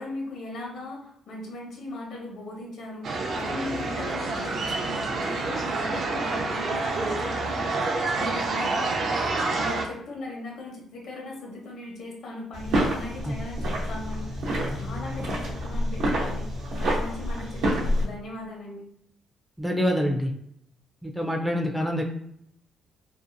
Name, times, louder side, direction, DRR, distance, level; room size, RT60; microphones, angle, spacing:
voice 1, 0.0-9.2 9.5-14.3 14.7-16.5 16.8-18.8, left 2 dB, 70° left, -1 dB, 0.9 m, -38 dB
sound 1, 3.0-9.8, right 3 dB, 60° right, 0.4 m, -28 dB
sound 2, 12.5-18.0, equal, 85° right, 0.8 m, -28 dB
voice 2, 19.6-20.3 21.0-22.0, equal, ahead, 1 dB, 0.4 m, -26 dB
2.6 x 2.4 x 2.5 m, 0.73 s
cardioid pair, 90°, 0 cm